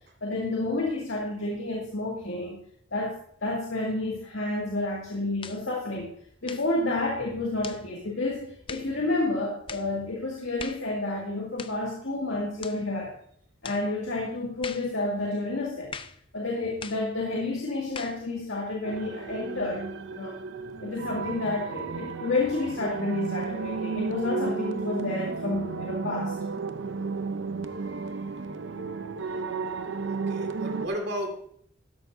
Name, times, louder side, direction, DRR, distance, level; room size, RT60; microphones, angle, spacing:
voice 1, 0.2-2.6 2.9-6.1 6.4-13.1 13.6-15.9 16.3-19.8 20.1-20.4 20.8-26.3, left 2 dB, 85° left, -3 dB, 2.1 m, -30 dB
sound 1, 5.4-5.7 6.4-6.7 7.6-7.9 8.7-8.9 9.7-9.9 10.6-10.9 11.6-11.8 12.6-12.8 13.6-13.9 14.6-14.9 15.9-16.2 16.8-17.1 17.9-18.2, left 6 dB, 25° left, 0.5 m, -40 dB
sound 2, 18.8-30.9, right 4 dB, 75° right, 0.7 m, -33 dB
voice 2, 30.0-31.5, equal, 60° right, 2 dB, 2.3 m, -34 dB
12.5 x 11.0 x 2.7 m, 0.66 s
head